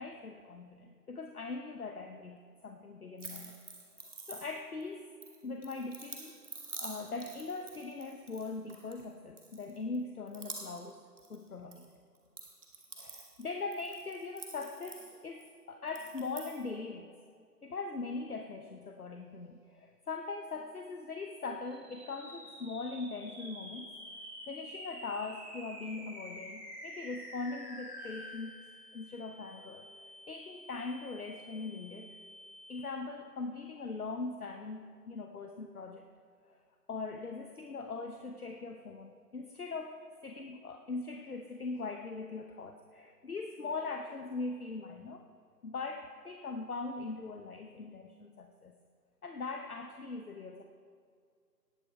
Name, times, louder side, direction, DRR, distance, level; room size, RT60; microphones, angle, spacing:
voice 1, 0.0-3.6 4.3-5.1 5.4-6.3 6.8-11.0 11.3-11.8 13.0-17.1 17.6-23.9 24.5-28.5 28.9-32.1 32.7-36.0 36.5-36.6 36.9-45.2 45.6-48.8 49.2-50.6, left 3 dB, 65° left, 5 dB, 0.8 m, -41 dB
sound 1, 3.2-4.8 5.2-9.0 9.4-10.0 10.3-11.8 12.1-15.5 15.9-16.6, right 3 dB, 50° right, 1.8 m, -48 dB
sound 2, 21.7-33.2, equal, 5° right, 2.6 m, -49 dB
18.0 x 6.8 x 4.8 m, 2.2 s
figure-of-eight pair, 155°, 48 cm